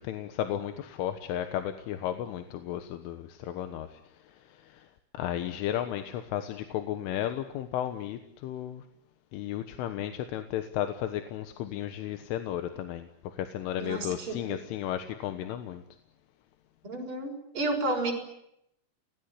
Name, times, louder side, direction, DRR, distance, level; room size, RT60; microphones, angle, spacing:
voice 1, 0.0-8.9 9.3-15.8, left 11 dB, 85° left, 8 dB, 3.8 m, -34 dB
voice 2, 13.8-14.3 16.8-18.1, right 2 dB, 25° right, 2 dB, 6.6 m, -31 dB
30.0 x 20.0 x 9.7 m, 0.80 s
omnidirectional pair, 5.5 m